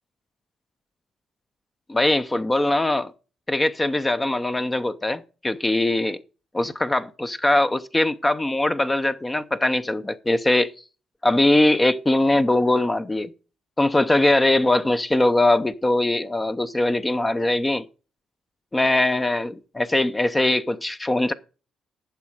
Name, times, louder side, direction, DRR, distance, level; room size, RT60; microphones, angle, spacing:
voice 1, 1.9-3.1 3.5-6.2 6.5-10.7 11.2-13.3 13.8-17.8 18.7-21.3, left 2 dB, 15° left, 0.7 m, -21 dB
11.5 x 7.4 x 4.9 m
cardioid pair, 90°, 0 cm